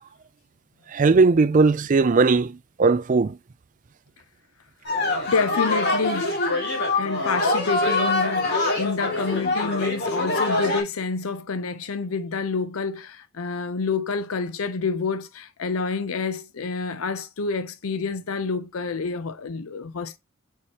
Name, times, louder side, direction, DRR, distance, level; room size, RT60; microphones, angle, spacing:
voice 1, 0.9-3.4 5.1-5.2, right 4 dB, 40° right, 0.4 m, -19 dB
sound 1, 4.8-10.8, left 2 dB, 50° left, 2.4 m, -24 dB
voice 2, 5.3-6.4 6.9-20.2, left 4 dB, 85° left, 0.6 m, -28 dB
8.6 x 4.5 x 2.9 m
head